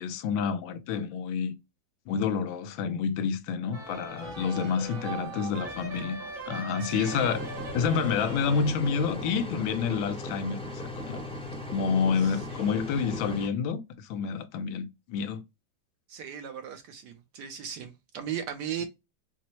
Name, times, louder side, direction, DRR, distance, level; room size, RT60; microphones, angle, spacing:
voice 1, 0.0-1.5 2.1-6.2 6.5-7.4 7.7-11.2 11.7-15.4, left 6 dB, 80° left, 1.3 m, -29 dB
sound 1, 3.7-8.8, right 4 dB, 50° right, 1.1 m, -40 dB
voice 2, 4.4-5.1 6.8-7.3 12.2-12.6 16.1-18.8, right 9 dB, 70° right, 1.1 m, -38 dB
sound 2, 7.0-13.5, left 2 dB, 10° left, 0.3 m, -38 dB
4.4 x 2.0 x 2.9 m
omnidirectional pair, 2.1 m